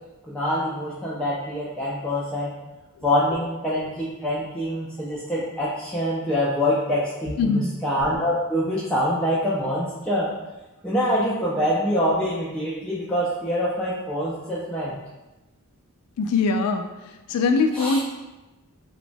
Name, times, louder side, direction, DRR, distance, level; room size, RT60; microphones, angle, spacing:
voice 1, 0.3-2.5 3.0-10.3 10.8-15.0 17.8-18.0, equal, 5° left, -9 dB, 0.3 m, -25 dB
voice 2, 7.4-7.7 16.2-18.0, left 4 dB, 90° left, 7 dB, 0.3 m, -22 dB
2.9 x 2.1 x 2.5 m, 1.1 s
head